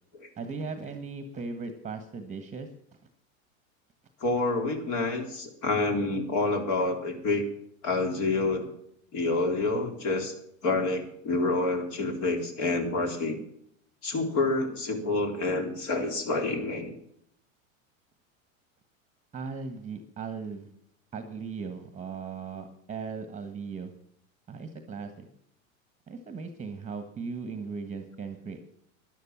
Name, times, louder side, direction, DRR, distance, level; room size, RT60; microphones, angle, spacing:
voice 1, 0.4-2.7 19.3-20.7 21.1-23.9 24.5-25.3 26.1-28.6, right 5 dB, 15° right, 8 dB, 1.5 m, -38 dB
voice 2, 4.2-7.4 7.8-8.6 9.1-10.3 10.6-13.4 14.0-16.9, left 2 dB, 45° left, 4 dB, 3.8 m, -28 dB
12.5 x 11.0 x 7.3 m, 0.70 s
hypercardioid pair, 105°, 41 cm